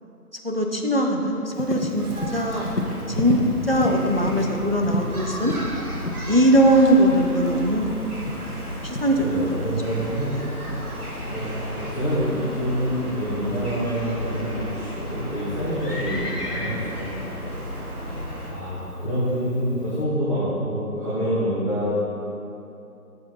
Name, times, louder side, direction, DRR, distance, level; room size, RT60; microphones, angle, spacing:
voice 1, 0.4-2.0 2.3-2.7 3.1-3.4 3.7-5.5 6.2-7.9 8.2-8.4 8.8-9.6 10.3-10.5 18.0-18.6, right 1 dB, 40° right, 2 dB, 0.6 m, -21 dB
Livestock farm animals working animals, 1.5-20.0, left 2 dB, 90° left, 1.3 m, -34 dB
sound 1, 2.0-18.5, equal, 65° right, 1.9 m, -34 dB
voice 2, 9.2-10.3 10.9-11.0 11.3-17.1 17.4-17.5 18.5-21.9, equal, 30° left, -15 dB, 2.1 m, -27 dB
9.7 x 6.9 x 4.1 m, 2.7 s
figure-of-eight pair, 170°, 46 cm